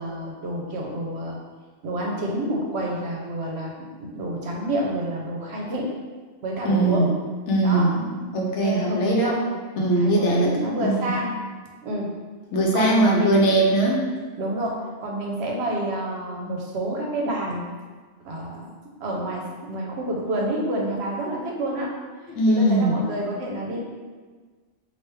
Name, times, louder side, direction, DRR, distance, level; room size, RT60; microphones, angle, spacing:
voice 1, 0.0-1.4 1.8-5.9 6.4-7.1 7.6-7.9 8.6-9.5 9.9-11.4 11.8-12.1 12.7-13.5 14.4-17.7 18.2-18.7 19.0-21.9 22.5-23.8, right 1 dB, 65° right, -1 dB, 0.8 m, -28 dB
voice 2, 6.6-7.1 7.5-9.3 9.8-11.1 12.5-14.1 22.3-23.0, right 1 dB, 75° left, -1 dB, 1.0 m, -21 dB
3.3 x 2.5 x 3.0 m, 1.4 s
omnidirectional pair, 1.2 m